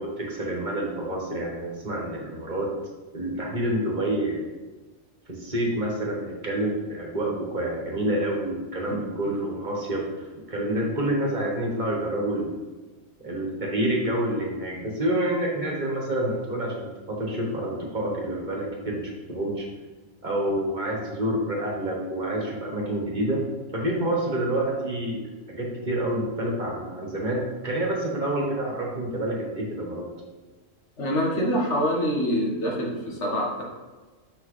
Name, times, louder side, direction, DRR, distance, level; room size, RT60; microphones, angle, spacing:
voice 1, 0.0-2.7 3.1-4.4 5.3-10.1 10.5-12.5 13.2-19.7 20.2-23.4 23.7-25.2 25.5-30.1, right 1 dB, 40° right, -2 dB, 1.5 m, -28 dB
voice 2, 31.0-33.6, equal, 80° left, -2 dB, 1.7 m, -25 dB
6.4 x 6.0 x 3.2 m, 1.2 s
omnidirectional pair, 1.2 m